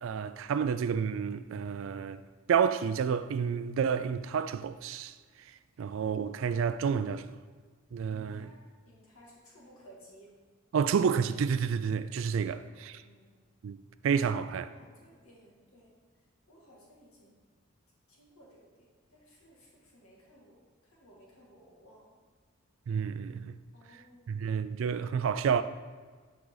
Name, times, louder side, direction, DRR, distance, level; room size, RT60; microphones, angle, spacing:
voice 1, 0.0-2.2 2.5-5.1 5.8-7.3 7.9-8.5 10.7-13.0 13.6-13.8 14.0-14.7 22.9-23.6 24.3-25.6, right 6 dB, 65° right, 0.3 m, -29 dB
voice 2, 8.1-10.3 12.6-13.3 14.6-16.0 16.5-17.4 18.1-22.1 23.7-24.9, equal, 85° left, 2.4 m, -58 dB
10.5 x 5.0 x 4.0 m
head